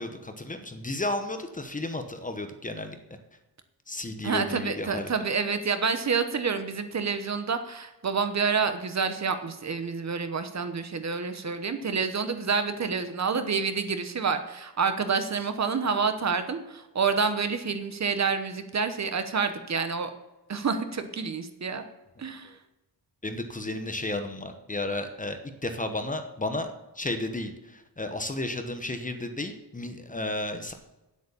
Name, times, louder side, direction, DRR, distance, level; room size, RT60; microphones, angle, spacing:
voice 1, 0.0-3.0 3.9-5.1 22.2-22.3 23.2-30.7, left 2 dB, 20° left, 7 dB, 0.9 m, -33 dB
voice 2, 4.2-20.1 20.5-21.8 22.2-22.5, right 5 dB, 40° right, 9 dB, 1.0 m, -28 dB
9.5 x 8.2 x 6.9 m, 1.0 s
wide cardioid pair, 155°, 41 cm